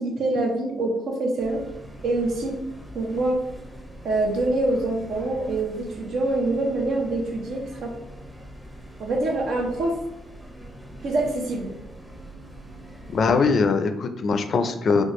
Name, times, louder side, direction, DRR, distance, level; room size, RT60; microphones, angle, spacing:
voice 1, 0.0-1.6 2.0-2.6 2.9-3.4 4.0-7.9 9.0-10.0 11.0-11.7, right 2 dB, 70° right, 1 dB, 0.8 m, -25 dB
sound 1, 1.4-13.3, right 1 dB, 5° right, 0.7 m, -43 dB
voice 2, 13.1-15.0, left 4 dB, 55° left, 8 dB, 0.4 m, -21 dB
4.2 x 2.3 x 3.0 m, 0.92 s
cardioid pair, 90°, 0 cm